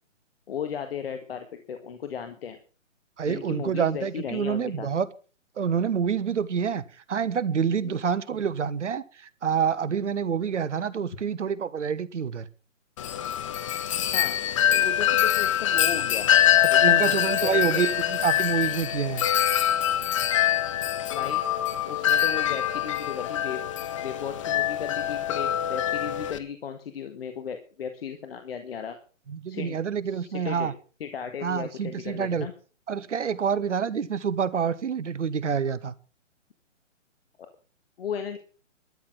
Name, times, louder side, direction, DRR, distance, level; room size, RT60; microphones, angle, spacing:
voice 1, 0.5-2.6 3.3-4.9 7.8-8.0 14.1-14.4 14.7-16.3 16.7-17.8 21.1-21.4 21.9-23.6 24.0-29.0 29.5-29.8 30.0-30.7 31.0-32.5 37.4-37.5 38.0-38.4, left 7 dB, 50° left, 1.7 m, -36 dB
voice 2, 3.2-5.1 5.6-6.8 7.1-9.0 9.4-12.5 16.6-19.3 29.3-30.7 31.4-32.5 32.9-35.9, right 7 dB, 65° right, 1.3 m, -27 dB
Wind chime, 13.0-26.4, left 11 dB, 25° left, 0.7 m, -24 dB
13.0 x 8.7 x 7.4 m
figure-of-eight pair, 140°, 38 cm